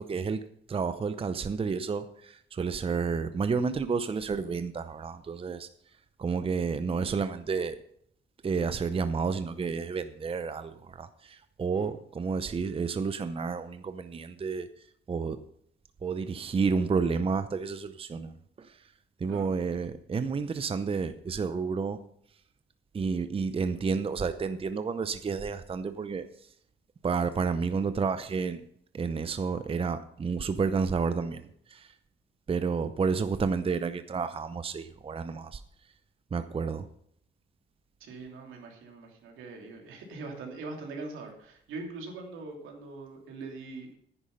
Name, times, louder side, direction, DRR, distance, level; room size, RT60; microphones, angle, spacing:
voice 1, 0.0-5.7 6.2-7.8 8.4-14.7 15.1-15.4 16.0-18.8 19.2-22.0 22.9-26.3 27.0-28.6 28.9-31.9 32.5-35.6 36.3-36.9, right 5 dB, 30° right, 11 dB, 0.7 m, -30 dB
voice 2, 38.0-44.0, right 3 dB, 85° right, 1 dB, 3.0 m, -42 dB
10.0 x 9.8 x 5.5 m, 0.68 s
cardioid pair, 90°, 20 cm